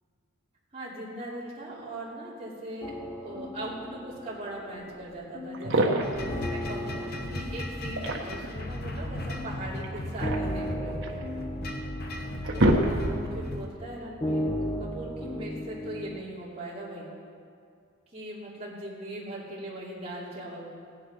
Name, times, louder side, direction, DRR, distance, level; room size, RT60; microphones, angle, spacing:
voice 1, 0.7-11.3 12.8-17.1 18.1-20.7, right 1 dB, 30° right, -6 dB, 3.0 m, -40 dB
sound 1, 2.8-16.2, equal, 20° left, 0.8 m, -37 dB
sound 2, 5.1-5.2 5.5-6.3 7.7-8.6 9.8-11.2 11.8-11.9 12.2-13.4, right 1 dB, 60° right, 1.3 m, -26 dB
sound 3, 6.0-13.7, left 1 dB, 45° left, 1.1 m, -36 dB
16.5 x 10.0 x 5.5 m, 2.3 s
head